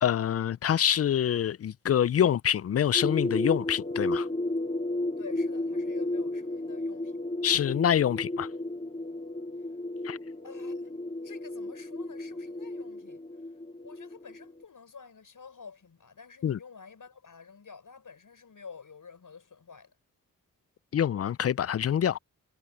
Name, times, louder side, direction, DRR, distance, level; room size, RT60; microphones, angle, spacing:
voice 1, 0.0-4.3 7.4-8.5 10.0-10.2 16.4-16.6 20.9-22.2, left 9 dB, 45° left, 0.5 m, -26 dB
sound 1, 2.9-14.6, left 2 dB, 20° left, 3.5 m, -33 dB
voice 2, 5.2-7.1 10.4-13.2 13.8-19.9, left 5 dB, 65° left, 5.7 m, -49 dB
cardioid pair, 55°, 34 cm